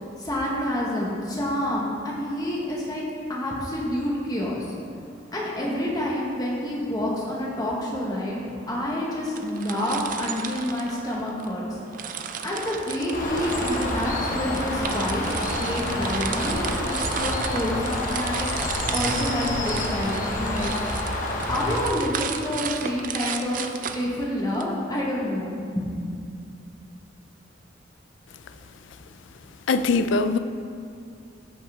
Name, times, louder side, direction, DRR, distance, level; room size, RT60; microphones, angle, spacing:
voice 1, 0.2-3.0 3.3-4.6 5.3-11.8 12.4-15.2 15.6-20.7 21.5-23.6 23.9-25.9, left 1 dB, 20° left, -4 dB, 1.4 m, -28 dB
sound 1, 4.2-20.5, right 2 dB, 80° right, 1.3 m, -45 dB
sound 2, 9.3-11.5 11.9-24.6, right 7 dB, 45° right, 0.4 m, -34 dB
Bird, 13.1-21.9, left 1 dB, 45° left, 1.0 m, -28 dB
voice 2, 29.7-30.4, left 3 dB, 80° left, 10 dB, 0.4 m, -21 dB
13.5 x 5.6 x 3.6 m, 2.3 s
head